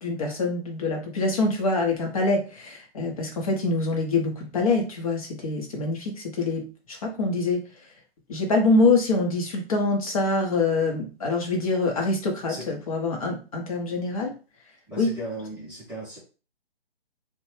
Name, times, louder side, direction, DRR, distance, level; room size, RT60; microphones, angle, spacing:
voice 1, 0.0-7.6 8.3-14.3 15.0-15.1, left 3 dB, 35° left, 1 dB, 0.8 m, -25 dB
voice 2, 14.9-16.2, right 1 dB, 5° right, -8 dB, 0.6 m, -37 dB
2.7 x 2.1 x 3.0 m, 0.34 s
figure-of-eight pair, 140°, 31 cm